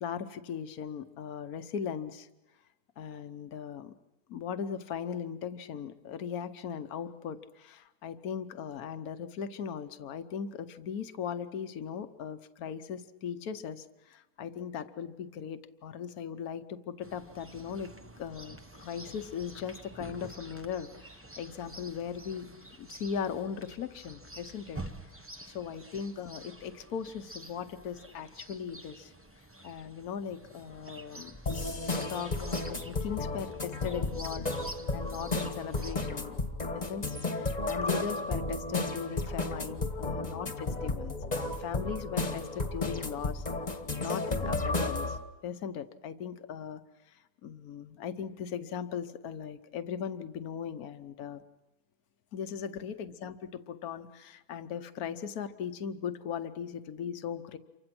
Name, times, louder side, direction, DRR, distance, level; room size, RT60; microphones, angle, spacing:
voice 1, 0.0-2.3 3.0-3.9 4.3-17.9 18.2-24.8 25.5-29.1 29.6-31.4 32.0-34.5 34.9-36.4 36.7-43.4 44.0-45.2 45.4-46.8 47.4-51.4 52.3-53.4 53.7-57.6, left 7 dB, 65° left, 10 dB, 1.4 m, -38 dB
Chirp tweet, 17.0-35.9, right 1 dB, 10° right, 0.8 m, -49 dB
sound 1, 31.5-45.2, left 2 dB, 25° left, 1.5 m, -33 dB
28.5 x 24.5 x 6.1 m, 1.0 s
omnidirectional pair, 1.8 m